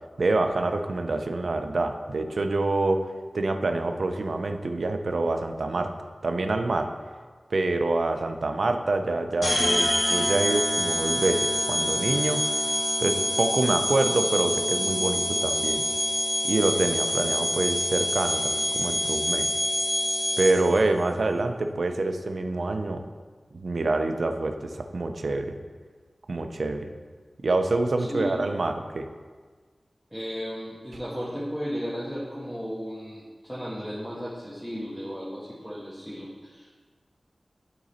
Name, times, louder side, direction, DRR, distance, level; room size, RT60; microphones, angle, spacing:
voice 1, 0.2-3.0 3.3-5.9 6.2-6.9 7.5-12.5 13.0-15.8 16.4-19.5 20.4-23.0 23.5-25.6 26.3-26.9 27.4-29.1, right 2 dB, 80° right, 6 dB, 0.6 m, -26 dB
sound 1, 9.4-20.8, left 1 dB, 65° left, 1.5 m, -26 dB
voice 2, 28.0-28.3 30.1-36.7, equal, ahead, -7 dB, 1.4 m, -35 dB
11.5 x 3.9 x 4.2 m, 1.5 s
wide cardioid pair, 75°, 0 cm